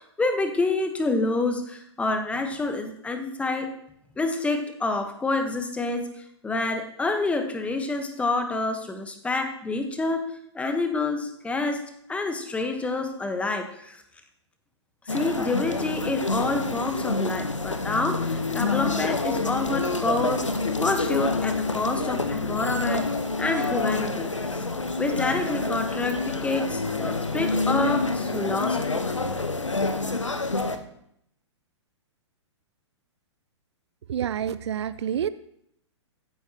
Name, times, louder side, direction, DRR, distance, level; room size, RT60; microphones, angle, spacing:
voice 1, 0.2-3.7 4.2-6.1 6.4-10.2 10.5-11.8 12.1-14.0 15.1-20.5 20.8-23.1 23.4-24.7 25.0-29.0, left 3 dB, 10° left, 6 dB, 1.1 m, -27 dB
sound 1, 15.1-30.8, left 3 dB, 90° left, 1.0 m, -27 dB
voice 2, 34.1-35.3, right 9 dB, 65° right, 15 dB, 0.5 m, -28 dB
15.5 x 9.4 x 2.9 m, 0.74 s
figure-of-eight pair, 115°, 15 cm